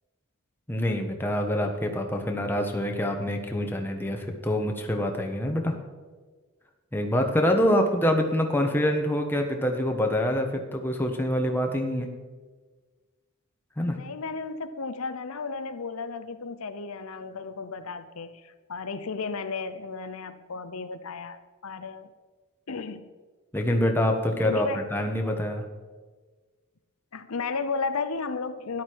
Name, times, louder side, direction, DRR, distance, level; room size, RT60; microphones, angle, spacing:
voice 1, 0.7-5.7 6.9-12.1 13.8-14.0 23.5-24.7 24.9-25.6, left 1 dB, 10° left, 2 dB, 1.3 m, -25 dB
voice 2, 13.9-22.1 22.7-23.1 24.4-24.9 27.1-28.8, left 4 dB, 80° left, 10 dB, 0.7 m, -34 dB
13.5 x 11.0 x 4.7 m, 1.4 s
head